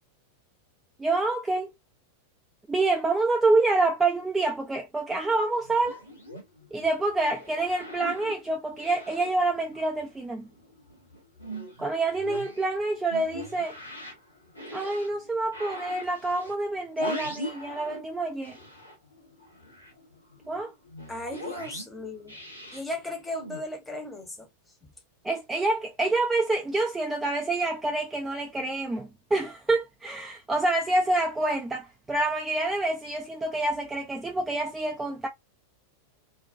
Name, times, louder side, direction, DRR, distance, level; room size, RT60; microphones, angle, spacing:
voice 1, 1.0-1.7 2.7-6.0 6.7-10.5 11.8-13.8 14.7-18.6 20.5-20.7 25.2-35.3, right 2 dB, 10° right, 0.4 m, -27 dB
sound 1, 5.5-10.2 10.5-18.1 18.4-23.6, equal, 85° left, 0.8 m, -41 dB
voice 2, 21.1-22.4 22.7-24.5 24.8-24.9, left 1 dB, 10° left, 0.8 m, -36 dB
2.5 x 2.1 x 2.4 m
figure-of-eight pair, 90°, 0 cm